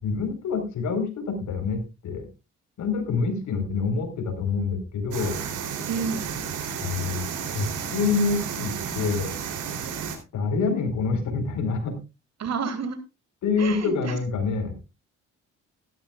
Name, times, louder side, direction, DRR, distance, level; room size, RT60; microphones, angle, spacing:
voice 1, 0.0-2.3 2.8-5.4 6.8-7.3 7.5-9.3 10.3-11.9 13.4-14.8, left 4 dB, 75° left, 7 dB, 4.5 m, -26 dB
sound 1, 5.1-10.2, right 7 dB, 85° right, 3.5 m, -32 dB
voice 2, 5.9-6.4 12.4-13.0 13.6-14.2, right 5 dB, 60° right, 9 dB, 3.0 m, -30 dB
15.5 x 13.0 x 2.4 m, 0.28 s
cardioid pair, 90°, 30 cm